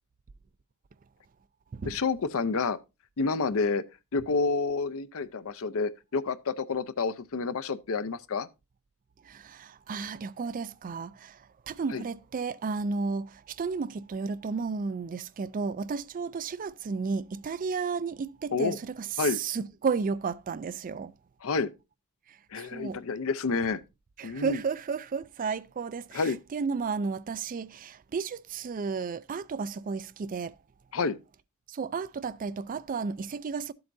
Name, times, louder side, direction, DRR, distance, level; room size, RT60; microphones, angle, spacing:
voice 1, 1.9-2.8 3.2-3.8 4.1-8.5 11.9-12.0 18.5-18.8 19.2-19.4 21.4-21.7 22.5-23.8 24.2-24.6 26.1-26.4 30.9-31.2, left 4 dB, 65° left, 0.6 m, -29 dB
voice 2, 9.2-11.4 11.7-21.1 22.3-23.0 24.2-30.6 31.7-33.7, right 5 dB, 40° right, 0.4 m, -33 dB
12.5 x 7.8 x 2.6 m
head